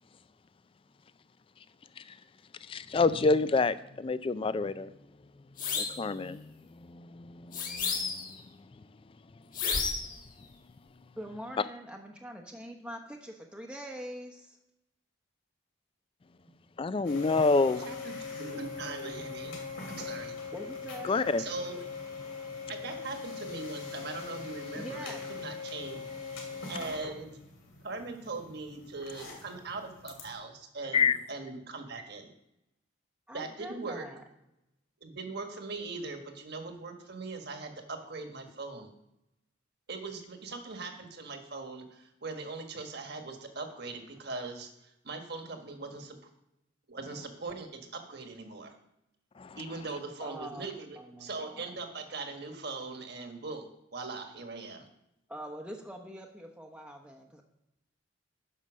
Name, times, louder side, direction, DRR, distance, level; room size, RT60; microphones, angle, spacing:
voice 1, 2.7-4.9 5.8-6.5 6.9-8.1 16.8-17.9 21.0-21.4 30.9-31.2 49.4-49.6, left 4 dB, 25° left, 15 dB, 0.3 m, -28 dB
sound 1, 5.6-6.0 7.5-8.4 9.5-10.2, left 5 dB, 45° left, 1.4 m, -32 dB
voice 2, 11.2-14.6 20.5-21.2 24.7-25.3 33.3-34.2 50.2-50.7 51.0-51.8 55.3-57.4, equal, 5° right, 1 dB, 0.9 m, -44 dB
sound 2, 17.0-30.3, left 5 dB, 85° left, 2.5 m, -41 dB
voice 3, 17.8-19.6 19.9-20.3 21.4-21.8 22.7-26.1 26.7-27.4 27.8-32.3 33.3-34.1 35.0-38.9 39.9-46.2 46.9-48.8 49.6-53.7 53.9-54.9, right 3 dB, 55° right, 5 dB, 1.4 m, -40 dB
9.8 x 5.4 x 6.3 m, 0.86 s
head